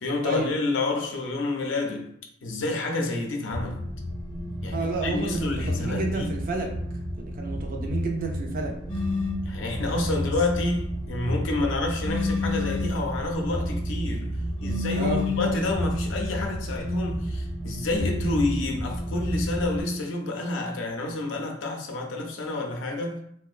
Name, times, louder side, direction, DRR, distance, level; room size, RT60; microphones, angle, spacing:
voice 1, 0.0-2.1 2.4-3.8 4.6-6.3 9.4-23.2, left 2 dB, 85° left, 0.5 m, -29 dB
sound 1, 3.5-19.8, equal, 90° right, 0.7 m, -32 dB
voice 2, 4.7-6.7 7.2-8.7 14.9-15.2, right 3 dB, 50° right, 0.4 m, -30 dB
sound 2, 8.9-9.5 12.0-13.0 14.6-15.6, left 4 dB, 30° left, 0.7 m, -29 dB
2.7 x 2.1 x 2.4 m
head